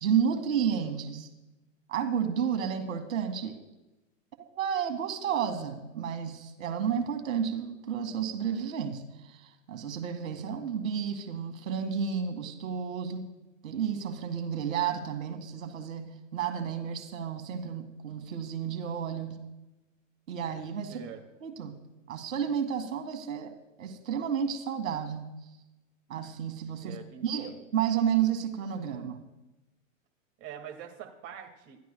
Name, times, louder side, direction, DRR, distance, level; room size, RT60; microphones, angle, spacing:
voice 1, 0.0-1.3 1.9-3.6 4.6-13.3 13.6-19.4 20.3-21.0 21.4-21.8 22.1-23.5 23.8-25.3 26.1-29.2, right 8 dB, 80° right, 5 dB, 2.3 m, -31 dB
voice 2, 20.9-21.2 26.8-27.6 30.4-31.8, right 8 dB, 35° right, 3 dB, 2.2 m, -44 dB
27.0 x 13.5 x 2.3 m, 0.99 s
hypercardioid pair, 135°, 39 cm